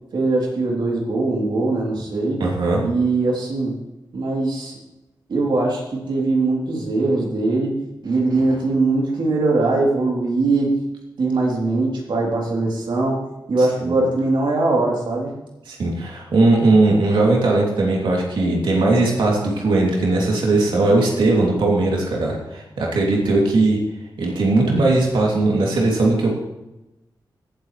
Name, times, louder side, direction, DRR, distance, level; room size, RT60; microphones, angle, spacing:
voice 1, 0.1-2.4 2.8-3.8 4.1-4.7 5.3-7.7 8.0-10.8 11.2-15.3, right 2 dB, 70° right, -2 dB, 3.3 m, -21 dB
voice 2, 2.4-2.8 13.6-13.9 15.7-23.8 24.2-26.3, right 2 dB, 90° right, -2 dB, 2.9 m, -19 dB
17.0 x 8.1 x 3.3 m, 0.97 s
wide cardioid pair, 120°, 8 cm